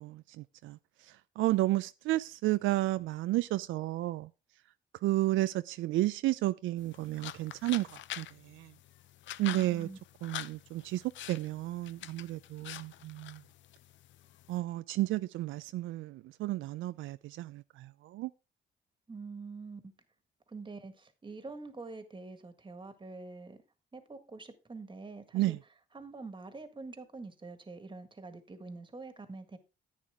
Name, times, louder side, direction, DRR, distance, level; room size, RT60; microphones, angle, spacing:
voice 1, 0.0-4.3 5.0-8.7 9.4-9.9 10.2-13.4 14.5-18.3 25.3-25.6, right 16 dB, 85° right, 0.4 m, -32 dB
sound 1, 6.8-14.6, left 13 dB, 70° left, 0.5 m, -46 dB
voice 2, 9.4-10.0 19.1-19.9 20.5-23.6 23.9-25.6 25.9-29.6, right 3 dB, 25° right, 1.7 m, -45 dB
10.5 x 8.8 x 3.6 m
cardioid pair, 90°, 20 cm